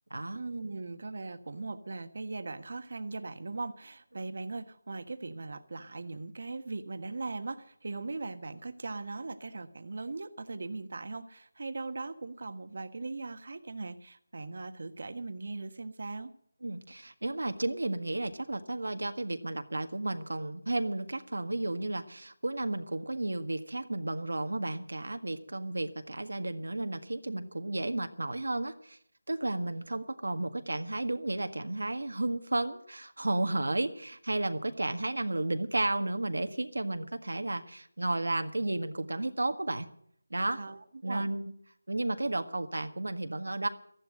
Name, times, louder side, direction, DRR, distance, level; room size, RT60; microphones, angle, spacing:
voice 1, 0.3-16.3 40.3-41.3, right 3 dB, 55° right, 9 dB, 1.5 m, -39 dB
voice 2, 16.6-29.0 29.3-39.9 40.3-40.6 41.0-41.4 41.9-43.7, right 2 dB, 90° right, 7 dB, 1.7 m, -33 dB
14.5 x 11.5 x 7.7 m, 0.66 s
figure-of-eight pair, 170°, 0 cm